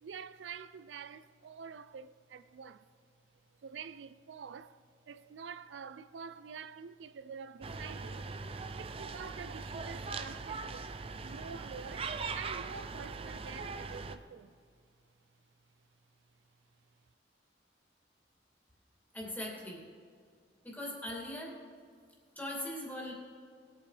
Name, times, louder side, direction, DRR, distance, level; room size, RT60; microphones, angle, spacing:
voice 1, 0.0-2.9 3.6-4.8 5.1-8.2 8.8-14.5, right 6 dB, 90° right, 0.4 m, -47 dB
sound 1, 7.6-14.2, right 4 dB, 30° right, 0.5 m, -41 dB
voice 2, 19.1-19.8 20.6-21.6 22.4-23.1, left 1 dB, 10° left, 2.5 m, -40 dB
20.0 x 8.5 x 3.4 m
head